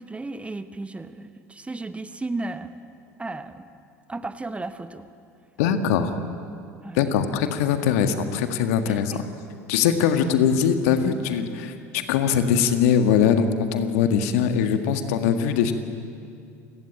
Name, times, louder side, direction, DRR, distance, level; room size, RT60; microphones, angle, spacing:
voice 1, 0.0-2.7 3.2-3.7 4.1-5.1 6.8-7.0 8.9-9.2, right 2 dB, 15° right, 11 dB, 1.2 m, -34 dB
voice 2, 5.6-6.2 6.9-9.3 9.7-15.7, left 7 dB, 65° left, 8 dB, 1.8 m, -22 dB
28.5 x 18.0 x 8.9 m, 2.4 s
figure-of-eight pair, 70°, 9 cm